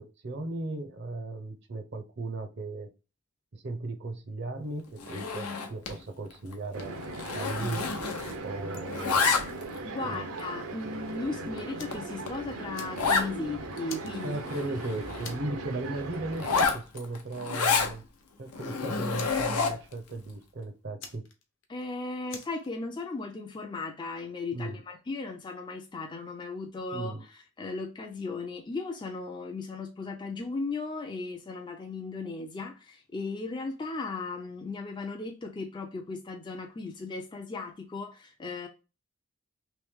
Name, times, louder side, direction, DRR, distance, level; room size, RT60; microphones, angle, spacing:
voice 1, 0.0-2.9 3.5-7.0 7.3-8.0 8.4-9.3 10.0-10.3 14.2-18.0 18.4-21.2 24.5-24.8 26.9-27.2, right 2 dB, 50° right, 0.6 m, -36 dB
Zipper (clothing), 5.0-6.0 6.3-6.5 6.8-8.5 8.7-9.8 10.4-10.5 11.1-11.2 11.6-11.7 11.9-12.0 12.3-12.4 13.0-13.3 13.8-13.9 14.1-15.4 16.3-17.9 18.5-19.9, left 5 dB, 90° left, 0.7 m, -29 dB
sound 1, 6.7-16.6, right 2 dB, 85° right, 0.7 m, -39 dB
voice 2, 9.8-14.4 21.7-38.7, left 3 dB, 20° left, 0.3 m, -36 dB
Fire, 11.8-12.1 12.5-13.4 13.9-14.8 15.2-15.6 15.9-16.1 16.5-17.3 17.7-18.3 18.5-18.7 19.1-19.9 21.0-21.8 22.3-22.7, left 6 dB, 55° left, 0.7 m, -45 dB
3.1 x 2.9 x 3.5 m
head